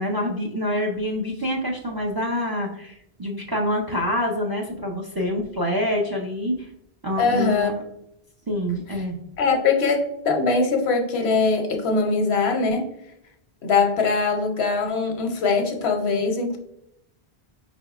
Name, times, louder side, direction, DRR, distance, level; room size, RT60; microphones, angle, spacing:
voice 1, 0.0-2.9 3.2-6.7 7.0-7.7 8.5-9.2, left 1 dB, 35° right, -1 dB, 0.4 m, -26 dB
voice 2, 7.2-7.7 9.4-12.9 13.6-16.6, left 4 dB, 85° left, 3 dB, 1.0 m, -22 dB
4.6 x 3.5 x 2.3 m, 0.80 s
omnidirectional pair, 1.0 m